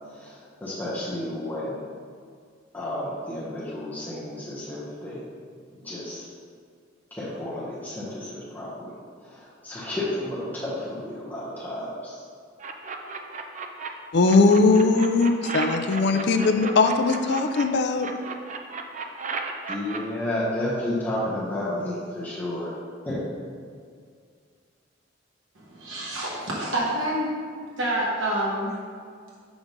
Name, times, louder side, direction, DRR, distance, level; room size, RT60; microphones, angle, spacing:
voice 1, 0.1-1.8 2.7-5.2 5.8-6.3 7.1-8.9 9.2-12.2 19.7-22.7 23.0-23.2, left 1 dB, 10° left, -8 dB, 0.9 m, -31 dB
sound 1, 12.6-13.9 14.2-17.6 18.0-20.0, right 5 dB, 40° right, 0.4 m, -34 dB
voice 2, 14.1-18.1, left 3 dB, 60° left, 7 dB, 0.4 m, -20 dB
voice 3, 25.6-27.3 27.8-28.7, right 1 dB, 80° right, -6 dB, 1.2 m, -27 dB
6.0 x 3.6 x 5.2 m, 2.1 s
head